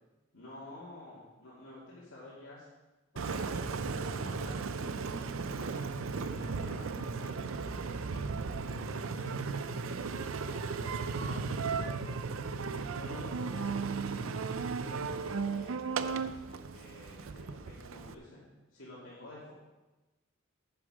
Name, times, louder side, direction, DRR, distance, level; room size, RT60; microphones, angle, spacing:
voice 1, 0.3-2.7 3.1-9.8 10.3-12.1 12.6-14.5 14.8-18.4 18.7-19.5, left 1 dB, 80° left, -8 dB, 2.6 m, -51 dB
Engine, 3.2-18.1, right 4 dB, 80° right, 0.5 m, -36 dB
10.0 x 7.0 x 5.0 m, 1.1 s
head